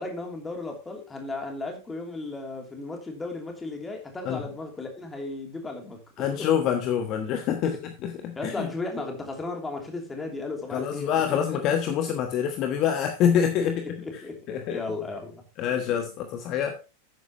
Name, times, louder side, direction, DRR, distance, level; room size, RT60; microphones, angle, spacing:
voice 1, 0.0-6.0 6.3-6.5 7.6-7.8 8.4-11.6 13.6-15.4 15.7-16.0, left 3 dB, 15° left, 2.9 m, -35 dB
voice 2, 6.2-8.7 10.7-13.8 14.5-14.8 15.6-16.8, left 8 dB, 35° left, 1.2 m, -26 dB
12.0 x 9.5 x 3.0 m
figure-of-eight pair, 90°, 0 cm